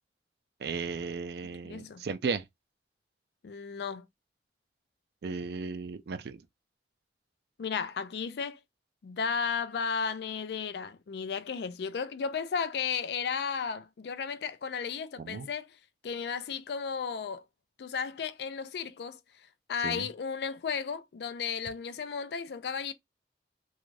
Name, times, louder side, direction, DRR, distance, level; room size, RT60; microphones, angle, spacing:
voice 1, 0.6-2.4 5.2-6.4 15.2-15.5 19.8-20.1, right 5 dB, 65° right, 0.4 m, -35 dB
voice 2, 1.6-2.0 3.4-4.1 7.6-8.6 9.0-15.8 16.0-17.4 17.8-19.2 19.7-22.9, left 6 dB, 70° left, 0.4 m, -34 dB
2.5 x 2.3 x 3.1 m
head